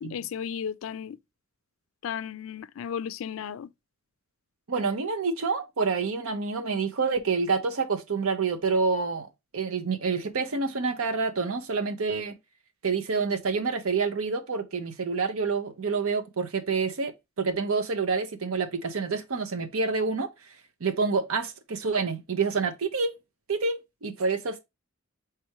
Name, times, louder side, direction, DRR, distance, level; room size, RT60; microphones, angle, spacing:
voice 1, 0.0-1.2 2.0-3.7, left 8 dB, 65° left, 0.3 m, -34 dB
voice 2, 4.7-9.3 9.5-12.3 12.8-17.1 17.4-20.3 20.8-23.2 23.5-24.6, right 4 dB, 80° right, 0.8 m, -27 dB
4.6 x 3.4 x 2.9 m
head